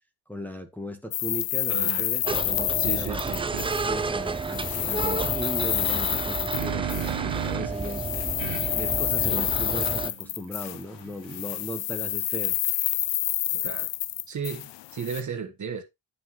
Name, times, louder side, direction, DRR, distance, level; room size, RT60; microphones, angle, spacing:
voice 1, 0.3-3.3 3.8-8.1 8.7-12.6, equal, 5° left, 1.3 m, -37 dB
sound 1, 1.1-4.1 4.4-7.2 7.7-11.0 11.3-15.2, left 16 dB, 70° left, 0.6 m, -28 dB
voice 2, 1.7-2.1 2.8-3.4 9.2-9.4 13.5-13.9 14.3-15.8, right 7 dB, 40° right, 1.5 m, -34 dB
sound 2, 2.2-10.1, right 4 dB, 15° right, 0.3 m, -31 dB
sound 3, 3.5-3.7 6.1-7.9 8.4-11.7, right 12 dB, 85° right, 1.5 m, -36 dB
9.7 x 5.7 x 3.0 m
cardioid pair, 100°, 44 cm